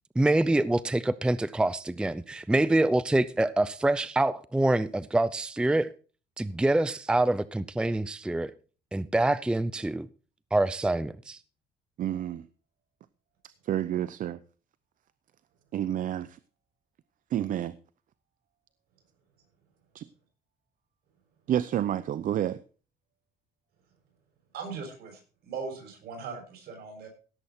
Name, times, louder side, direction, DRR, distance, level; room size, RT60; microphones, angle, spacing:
voice 1, 0.2-5.9 6.4-8.5 8.9-10.1 10.5-11.4, right 2 dB, 5° right, 0.5 m, -25 dB
voice 2, 12.0-12.5 13.7-14.4 15.7-16.4 17.3-17.8 19.9-20.0 21.5-22.6, right 11 dB, 55° right, 0.6 m, -29 dB
voice 3, 24.5-27.1, right 5 dB, 70° right, 6.4 m, -39 dB
16.5 x 7.9 x 4.3 m
cardioid pair, 110°, 17 cm